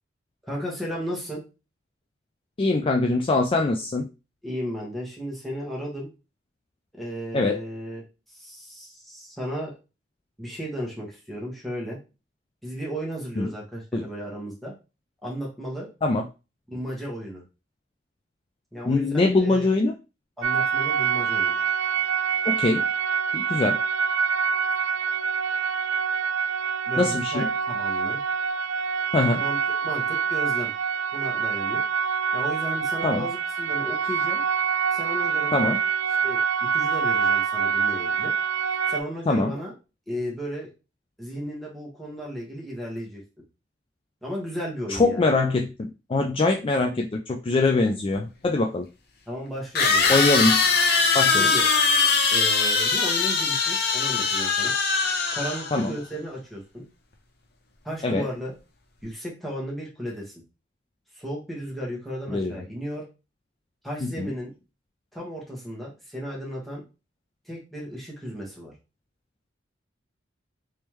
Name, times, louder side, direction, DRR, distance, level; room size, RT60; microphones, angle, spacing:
voice 1, 0.4-1.4 4.4-6.1 7.0-8.0 8.3-9.7 10.4-12.0 12.6-14.7 15.2-15.9 16.7-17.4 18.7-19.7 20.4-21.6 26.9-28.2 29.4-30.7 31.1-31.8 32.3-34.4 34.9-35.8 36.2-36.4 36.7-38.3 38.9-39.7 40.1-40.7 41.2-43.2 44.2-45.3 49.3-50.2 51.3-51.6 52.3-54.7 55.3-56.8 57.8-58.5 59.0-60.3 61.2-63.0 63.8-64.5 65.1-66.8 67.5-68.7, equal, ahead, -5 dB, 1.3 m, -34 dB
voice 2, 2.6-4.1 7.3-7.6 13.4-13.5 13.9-14.0 16.0-16.2 18.9-19.9 22.5-22.8 23.3-23.8 27.0-27.5 29.1-29.4 33.0-33.2 35.5-35.8 39.3-39.5 44.9-48.8 50.1-50.6 51.1-51.5 55.7-55.9 58.0-58.2 62.3-62.6 64.0-64.3, left 2 dB, 30° left, 3 dB, 0.3 m, -23 dB
sound 1, 20.4-39.0, right 6 dB, 75° right, 0.4 m, -25 dB
sound 2, 48.1-48.2 49.8-55.9, left 4 dB, 55° left, 0.7 m, -21 dB
3.5 x 3.1 x 3.0 m, 0.29 s
head